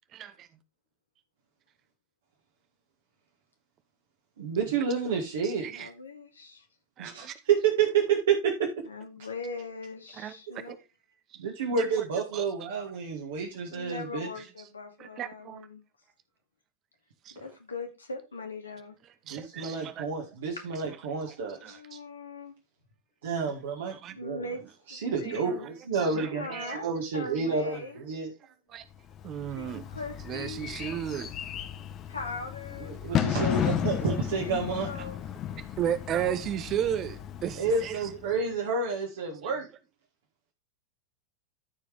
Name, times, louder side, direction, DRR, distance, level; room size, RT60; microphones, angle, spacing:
voice 1, 0.1-0.5 4.6-4.8 5.4-5.9 7.0-7.4 10.1-10.8 11.7-12.9 14.4-14.7 15.0-15.7 17.2-17.4 19.0-20.1 20.9-21.3 21.6-22.0 23.9-24.2 25.2-25.7 25.9-26.8 27.3-27.8 28.7-28.8 29.2-29.8 30.3-31.3 33.0-33.5 35.0-35.1 35.8-38.1 39.4-39.6, right 10 dB, 30° right, 0.9 m, -36 dB
voice 2, 4.4-5.7 7.0-8.8 11.4-14.3 19.3-21.8 23.2-24.5 24.9-28.3 29.7-29.8 32.8-34.9 37.6-39.7, right 5 dB, 60° right, 1.9 m, -29 dB
voice 3, 5.7-6.7 8.9-10.8 13.7-15.8 17.3-19.0 21.6-22.5 24.2-24.6 24.9-25.7 25.9-28.0 29.5-30.7 32.1-33.0 34.3-34.5 34.8-35.2, left 3 dB, 75° left, 2.2 m, -40 dB
Bird / Fireworks, 29.1-38.3, left 10 dB, 30° left, 0.8 m, -34 dB
13.5 x 5.0 x 3.5 m
figure-of-eight pair, 90°, 0 cm